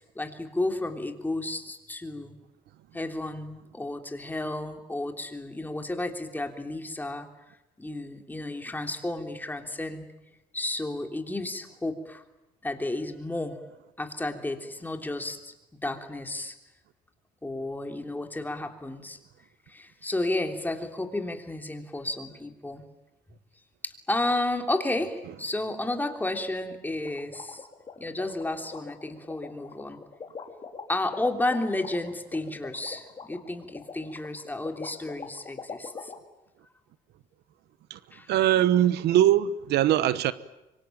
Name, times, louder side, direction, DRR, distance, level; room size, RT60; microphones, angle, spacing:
voice 1, 0.0-2.4 2.9-7.3 7.8-10.1 10.5-12.2 12.6-13.6 14.0-15.5 15.8-16.5 17.4-19.2 19.7-22.8 23.8-27.7 28.0-30.0 30.9-36.1 38.1-38.3, left 2 dB, 10° left, 3.1 m, -32 dB
sound 1, 27.0-36.2, left 5 dB, 30° left, 3.6 m, -41 dB
voice 2, 38.3-40.3, right 12 dB, 75° right, 1.1 m, -21 dB
25.5 x 24.5 x 9.2 m
cardioid pair, 110°, 17 cm